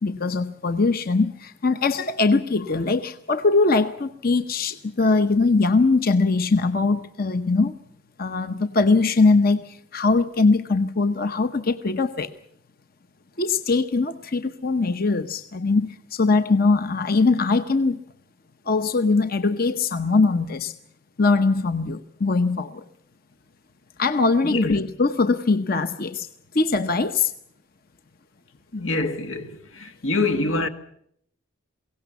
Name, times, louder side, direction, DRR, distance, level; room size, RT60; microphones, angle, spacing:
voice 1, 0.0-7.7 8.2-12.3 13.4-18.0 18.7-20.7 21.2-22.8 24.0-26.3 26.5-27.3, left 3 dB, 45° left, 0.8 m, -21 dB
voice 2, 24.4-24.8 28.7-30.7, left 2 dB, 90° left, 1.8 m, -25 dB
22.5 x 17.5 x 8.2 m
head